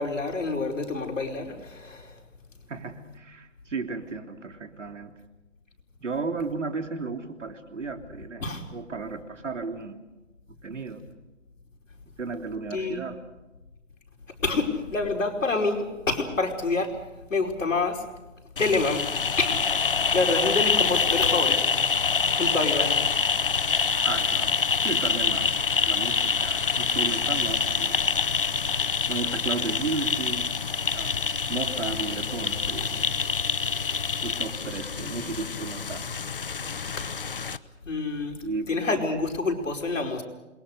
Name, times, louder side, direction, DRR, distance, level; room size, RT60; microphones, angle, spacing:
voice 1, 0.0-2.2 8.4-8.7 12.7-13.0 14.4-17.0 17.3-18.0 18.6-19.1 19.4-19.8 20.1-21.7 22.2-23.1 37.0-37.1 37.8-38.4 38.7-40.2, left 3 dB, 75° left, 3 dB, 5.0 m, -27 dB
voice 2, 2.7-5.1 6.0-8.4 8.7-10.0 10.5-11.0 12.1-13.2 24.0-28.2 29.1-30.5 30.9-33.1 34.2-36.1 38.4-38.7, right 4 dB, 70° right, 6 dB, 3.1 m, -34 dB
sound 1, 18.6-37.6, left 5 dB, 45° left, 0.7 m, -26 dB
27.5 x 22.5 x 6.5 m, 1.1 s
hypercardioid pair, 170°, 38 cm